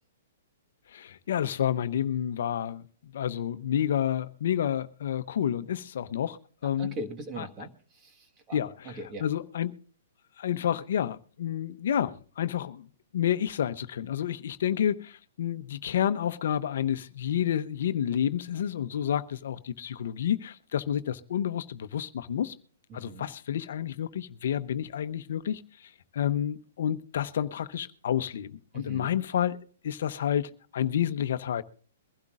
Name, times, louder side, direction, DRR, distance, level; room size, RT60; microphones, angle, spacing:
voice 1, 0.9-6.4 6.6-6.9 7.4-7.5 8.5-8.9 9.2-9.7 10.4-12.9 13.1-22.5 22.9-29.6 29.8-31.6, left 9 dB, 65° left, 0.8 m, -30 dB
voice 2, 6.8-8.6 8.8-9.3 22.9-23.3 28.7-29.1, right 2 dB, 25° right, 1.5 m, -40 dB
22.5 x 12.0 x 2.5 m
hypercardioid pair, 145°, 0 cm